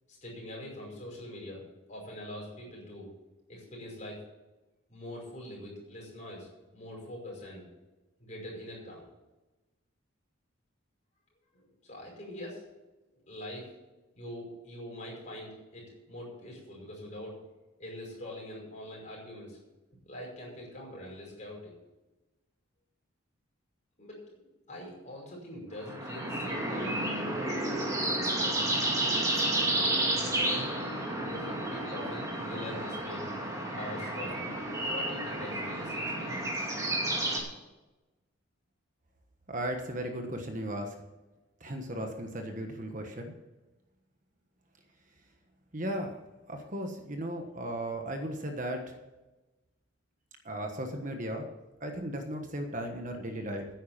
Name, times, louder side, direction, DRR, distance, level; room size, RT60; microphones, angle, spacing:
voice 1, 0.1-1.6 1.9-3.1 3.5-4.2 4.9-7.6 8.2-9.1 11.5-12.6 13.3-13.7 14.2-17.4 17.8-19.6 20.1-21.7 24.0-27.3 31.2-33.3 33.7-34.5 34.8-36.4, left 1 dB, 35° left, -3 dB, 5.5 m, -43 dB
sound 1, 25.8-37.4, right 1 dB, 15° right, 2.3 m, -31 dB
voice 2, 39.5-41.0 41.6-43.3 45.7-46.2 46.5-48.9 50.4-51.5 51.8-53.7, right 1 dB, 40° right, 4 dB, 1.3 m, -36 dB
10.5 x 9.2 x 7.5 m, 1.1 s
head